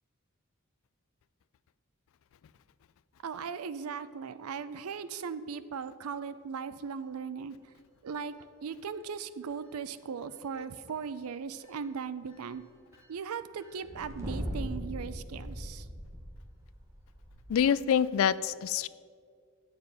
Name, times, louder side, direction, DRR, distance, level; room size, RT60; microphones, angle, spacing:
voice 1, 3.2-7.6 8.0-12.6 13.1-15.9, right 6 dB, 85° right, 14 dB, 0.5 m, -38 dB
sound 1, 11.6-11.7 12.3-12.6 12.9-13.1 13.6-17.5, equal, 15° right, 1.3 m, -40 dB
voice 2, 17.5-18.9, left 8 dB, 70° left, 17 dB, 0.3 m, -26 dB
9.4 x 6.9 x 5.4 m, 2.1 s
head